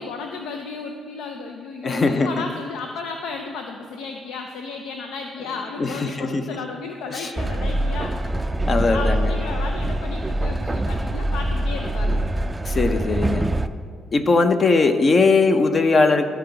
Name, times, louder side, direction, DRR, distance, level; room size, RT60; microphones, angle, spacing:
voice 1, 0.0-8.1 8.9-12.2, left 4 dB, 90° left, 3 dB, 0.5 m, -33 dB
voice 2, 1.8-2.3 5.8-6.5 7.1-7.3 8.7-9.3 12.6-13.4 14.1-16.3, left 3 dB, 40° left, 8 dB, 0.6 m, -19 dB
Train, 7.4-13.7, right 1 dB, 15° right, 0.3 m, -24 dB
12.5 x 4.7 x 3.9 m, 2.1 s
cardioid pair, 90°, 0 cm